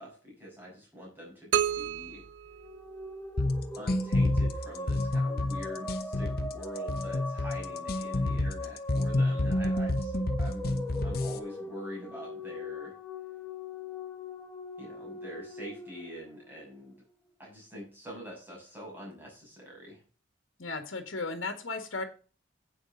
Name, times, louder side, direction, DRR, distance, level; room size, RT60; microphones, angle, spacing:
voice 1, 0.0-1.5 1.7-2.2 3.8-12.9 14.8-17.0 17.4-20.0, equal, 10° right, -3 dB, 6.8 m, -45 dB
sound 1, 1.5-3.4, right 8 dB, 70° right, 0.6 m, -31 dB
sound 2, 2.5-17.0, left 2 dB, 10° left, 1.4 m, -41 dB
sound 3, 3.4-11.4, left 1 dB, 50° left, 1.0 m, -28 dB
voice 2, 20.6-22.0, left 3 dB, 80° left, 6 dB, 1.8 m, -35 dB
11.0 x 8.6 x 3.9 m, 0.36 s
head